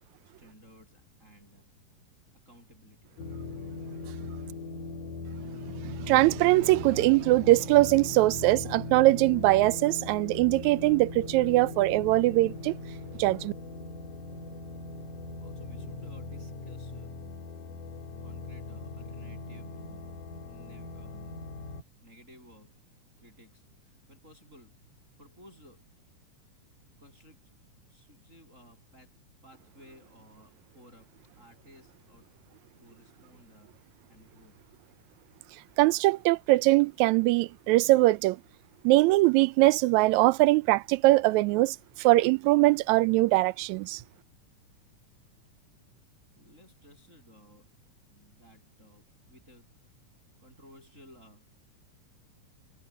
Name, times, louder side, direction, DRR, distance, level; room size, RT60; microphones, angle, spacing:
voice 1, 0.2-1.7 2.3-3.2 15.4-17.2 18.2-21.5 22.0-22.9 23.2-24.8 25.2-25.9 27.0-27.5 27.9-32.3 32.8-34.6 46.4-49.8 50.4-51.6, equal, 20° right, 8.2 m, -57 dB
sound 1, 3.2-21.8, left 2 dB, 75° left, 4.6 m, -40 dB
voice 2, 5.8-12.8 13.2-13.5 35.8-38.4 38.8-44.0, right 19 dB, 80° right, 1.8 m, -22 dB
omnidirectional pair, 3.7 m